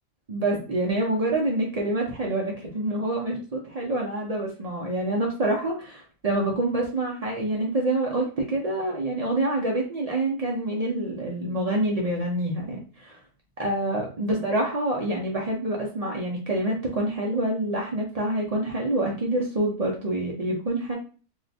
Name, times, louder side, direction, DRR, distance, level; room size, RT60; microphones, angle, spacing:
voice 1, 0.3-13.2 13.6-20.9, right 1 dB, 90° right, -2 dB, 0.3 m, -27 dB
2.7 x 2.1 x 4.0 m, 0.38 s
omnidirectional pair, 1.5 m